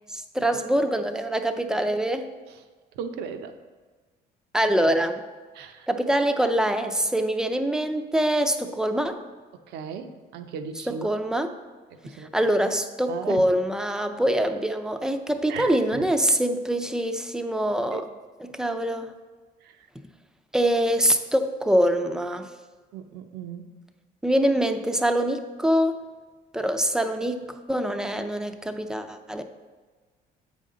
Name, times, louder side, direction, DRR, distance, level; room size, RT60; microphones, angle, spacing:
voice 1, 0.1-2.3 4.5-5.2 5.9-9.2 10.9-11.5 12.3-18.0 18.4-19.1 20.5-22.5 24.2-26.0 26.5-29.4, right 1 dB, 5° right, 7 dB, 0.5 m, -24 dB
voice 2, 2.9-3.5 5.5-5.9 9.5-11.1 11.9-12.3 13.1-13.4 15.5-16.0 17.9-18.0 19.6-19.9 22.9-23.6, right 7 dB, 80° right, 8 dB, 0.7 m, -37 dB
8.2 x 5.4 x 3.8 m, 1.4 s
cardioid pair, 110°, 17 cm